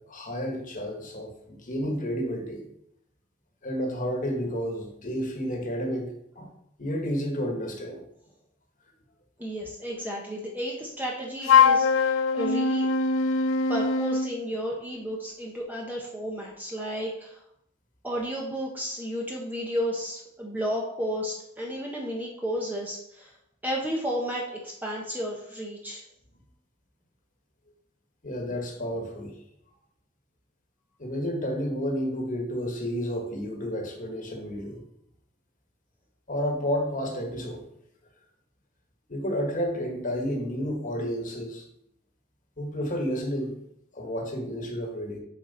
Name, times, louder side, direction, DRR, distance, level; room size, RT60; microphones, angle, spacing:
voice 1, 0.1-2.6 3.6-6.5 6.8-8.0 28.2-29.3 31.0-34.8 36.3-37.6 39.1-41.6 42.6-43.6 43.9-45.2, equal, 40° left, 1 dB, 1.5 m, -31 dB
voice 2, 9.4-12.9 13.7-17.4 18.0-23.3 23.6-26.0, equal, 10° right, -2 dB, 0.9 m, -32 dB
Wind instrument woodwind instrument, 11.4-14.3, left 5 dB, 65° left, 0.5 m, -22 dB
7.4 x 4.6 x 4.2 m, 0.75 s
head